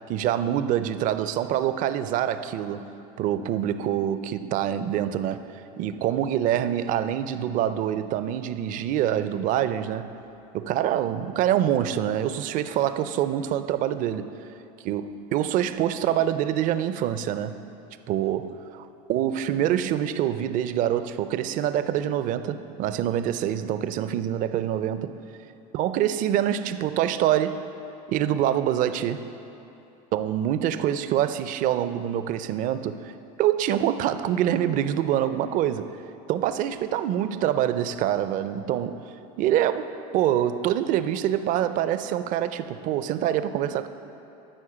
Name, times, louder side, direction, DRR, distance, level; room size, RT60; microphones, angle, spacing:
voice 1, 0.1-2.9 3.2-5.4 5.8-10.1 10.5-14.3 14.8-17.6 18.1-18.5 19.1-25.1 25.7-27.6 28.1-29.3 30.1-33.1 33.4-35.9 36.3-39.0 39.4-43.9, right 11 dB, 45° right, 0.4 m, -25 dB
13.0 x 4.4 x 4.9 m
supercardioid pair, 115°, 19 cm